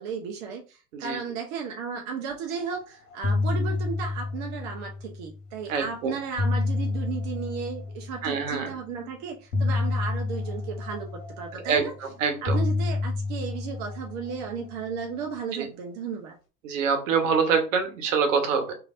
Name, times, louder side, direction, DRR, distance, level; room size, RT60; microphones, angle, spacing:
voice 1, 0.0-11.9 12.4-16.4, right 6 dB, 50° right, 2 dB, 0.6 m, -34 dB
sound 1, 2.6-2.8 3.1-5.4 6.1-8.5 9.5-12.0 12.5-15.0, left 3 dB, 50° left, 1.2 m, -29 dB
voice 2, 5.7-6.2 8.2-8.7 11.7-11.9 12.2-12.6 15.6-15.7 16.6-18.7, right 5 dB, 65° right, 5 dB, 1.0 m, -25 dB
3.1 x 2.6 x 2.5 m, 0.34 s
figure-of-eight pair, 75°, 41 cm